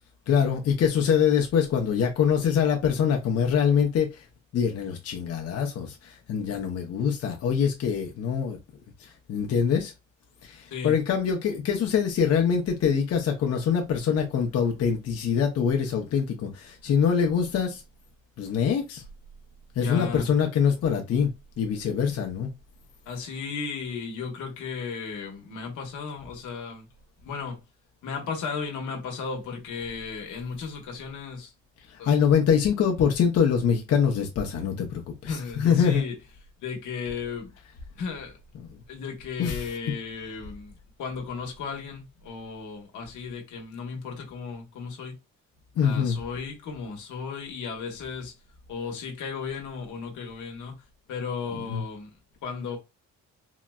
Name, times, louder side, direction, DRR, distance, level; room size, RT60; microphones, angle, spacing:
voice 1, 0.3-4.3 4.5-8.6 9.0-9.9 10.4-17.8 18.4-19.0 19.8-21.3 21.6-22.5 31.9-36.1 39.4-39.7 45.8-46.2 51.5-51.8, left 7 dB, 55° left, 0.7 m, -24 dB
voice 2, 19.8-20.4 23.1-26.9 27.2-27.6 28.0-31.5 32.0-32.1 35.3-36.2 36.6-37.5 37.9-38.4 38.9-45.1 45.8-48.3 48.7-50.8 51.1-52.8, left 5 dB, 80° left, 1.1 m, -35 dB
3.9 x 2.0 x 2.3 m
cardioid pair, 90°, 30 cm